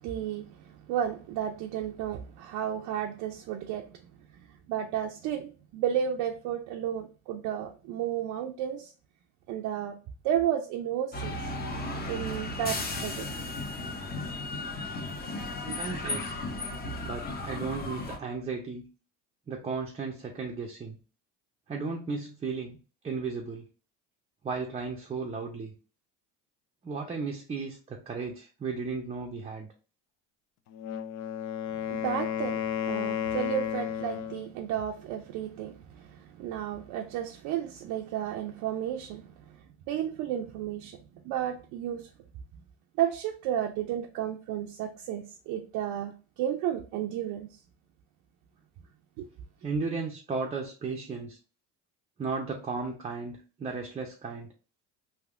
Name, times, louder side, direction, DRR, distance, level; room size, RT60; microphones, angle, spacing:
voice 1, 0.0-4.0 4.4-8.9 9.5-10.0 10.2-11.4 12.1-13.3 15.8-16.1 31.9-39.3 39.9-41.0 41.2-42.1 43.0-47.5 49.2-49.3, right 10 dB, 65° right, 0.5 m, -32 dB
sound 1, 11.1-18.2, left 2 dB, 30° left, 0.8 m, -35 dB
voice 2, 15.6-16.4 17.0-18.8 19.5-21.0 21.7-22.8 23.0-23.6 24.4-25.7 26.8-29.7 49.6-51.4 52.2-54.5, right 4 dB, 20° right, 0.5 m, -35 dB
Wind instrument woodwind instrument, 30.7-34.5, left 9 dB, 60° left, 0.5 m, -32 dB
3.5 x 2.6 x 2.4 m
supercardioid pair, 110°, 34 cm